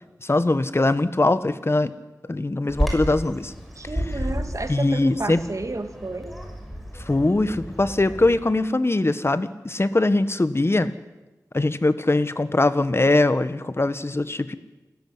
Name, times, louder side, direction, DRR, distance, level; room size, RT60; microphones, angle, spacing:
voice 1, 0.2-1.9 2.3-3.5 4.7-5.4 7.1-10.9 11.5-14.6, left 2 dB, 40° left, 13 dB, 1.4 m, -21 dB
Bird vocalization bird call bird song, 2.7-8.4, equal, ahead, 6.3 m, -31 dB
voice 2, 3.8-6.4, right 2 dB, 55° right, 7 dB, 2.5 m, -31 dB
28.0 x 13.5 x 9.7 m, 1.1 s
wide cardioid pair, 55°, 7 cm